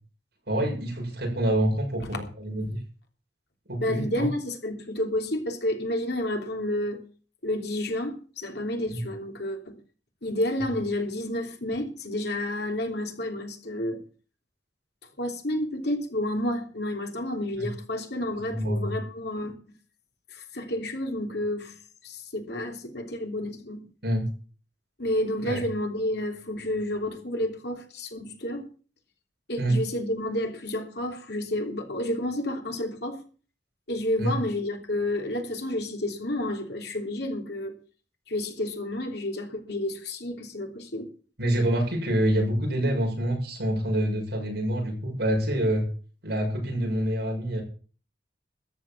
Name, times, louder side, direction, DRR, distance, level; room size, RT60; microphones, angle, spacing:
voice 1, 0.5-2.8 3.7-4.3 8.9-9.0 17.5-17.7 18.5-18.9 24.0-24.3 25.4-25.6 29.6-29.8 34.2-34.4 41.4-45.9 46.2-47.6, right 1 dB, 60° right, 6.8 m, -26 dB
voice 2, 3.8-7.0 7.4-9.8 10.2-14.0 15.2-19.5 20.3-21.7 22.0-23.8 25.0-28.6 29.5-33.2 33.9-37.8 38.3-41.1, left 1 dB, 65° left, 3.3 m, -30 dB
13.5 x 9.5 x 7.4 m
head